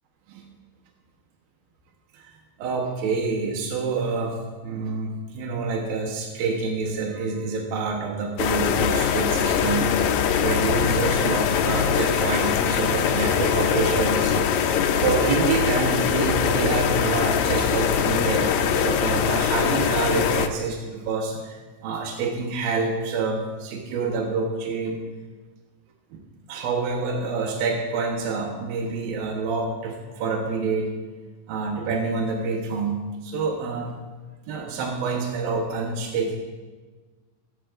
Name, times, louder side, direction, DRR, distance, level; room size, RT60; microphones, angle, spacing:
voice 1, 2.6-4.4 4.6-25.0 26.1-26.2 26.5-30.9 31.5-34.0 34.5-36.4, right 4 dB, 80° right, 0 dB, 3.0 m, -27 dB
sound 1, 8.4-20.5, left 7 dB, 80° left, 1.6 m, -22 dB
26.5 x 11.0 x 2.5 m, 1.3 s
omnidirectional pair, 4.1 m